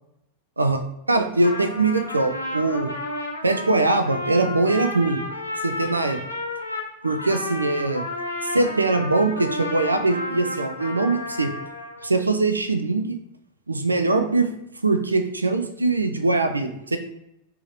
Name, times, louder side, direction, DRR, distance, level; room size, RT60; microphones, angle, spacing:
voice 1, 1.1-2.9 3.4-5.2 5.6-6.2 7.0-8.0 8.5-11.5 12.0-13.2 13.7-14.5 14.8-17.0, right 3 dB, 80° right, 7 dB, 0.3 m, -22 dB
Trumpet, 1.2-12.1, left 2 dB, 85° left, 0.8 m, -32 dB
3.5 x 2.9 x 3.4 m, 0.83 s
figure-of-eight pair, 90°, 0 cm